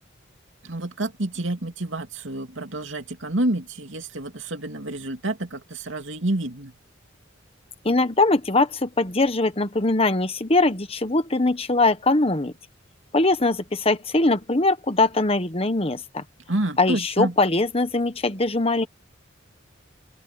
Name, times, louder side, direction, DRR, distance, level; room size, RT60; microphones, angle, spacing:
voice 1, 0.6-6.7 16.5-17.3, right 1 dB, 75° right, 2.7 m, -28 dB
voice 2, 7.8-12.5 13.1-16.2 16.8-18.9, left 2 dB, 30° left, 1.3 m, -21 dB
open air
head